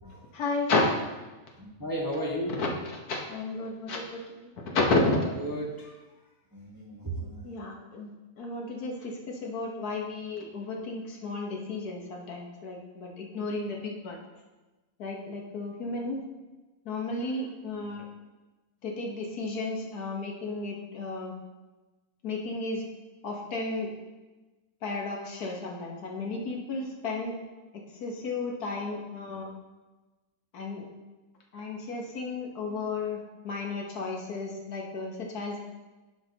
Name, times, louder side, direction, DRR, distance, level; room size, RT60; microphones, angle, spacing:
voice 1, 0.3-0.9 2.6-2.7 3.1-5.2 7.4-14.2 15.0-16.2 16.8-18.1 18.8-21.3 22.2-22.9 23.2-23.9 24.8-27.4 27.7-29.5 30.5-30.9 31.5-35.6, left 3 dB, 80° left, 0 dB, 1.6 m, -32 dB
voice 2, 1.5-2.6 5.1-6.0 6.5-7.5, right 1 dB, 15° right, -4 dB, 1.0 m, -35 dB
11.0 x 5.1 x 2.8 m, 1.2 s
omnidirectional pair, 1.6 m